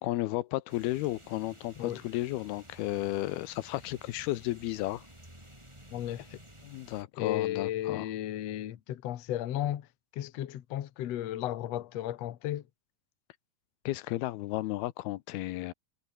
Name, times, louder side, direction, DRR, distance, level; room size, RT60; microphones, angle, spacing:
voice 1, 0.0-5.0 6.6-8.1 13.9-15.7, left 17 dB, 90° left, 2.8 m, -33 dB
sound 1, 0.7-7.0, right 1 dB, 5° right, 5.7 m, -54 dB
voice 2, 5.9-6.4 7.2-9.9 10.1-12.6, left 12 dB, 60° left, 1.9 m, -34 dB
omnidirectional pair, 4.4 m